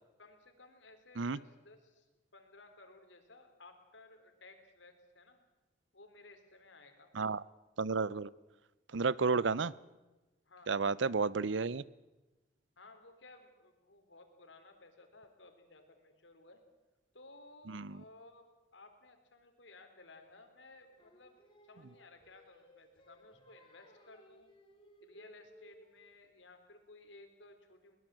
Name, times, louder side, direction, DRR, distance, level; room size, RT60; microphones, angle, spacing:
voice 1, 0.2-2.1 2.3-5.4 5.9-7.1 9.1-9.4 10.5-11.1 12.8-16.6 17.1-18.4 18.7-21.4 21.6-24.5 25.0-28.0, left 2 dB, 80° left, 6 dB, 3.8 m, -58 dB
voice 2, 7.8-8.3 8.9-9.7 10.7-11.8 17.7-18.0, right 4 dB, 80° right, 21 dB, 0.6 m, -32 dB
Singing, 21.0-26.2, right 1 dB, 25° left, 3.0 m, -62 dB
22.0 x 20.5 x 7.7 m, 1.1 s
head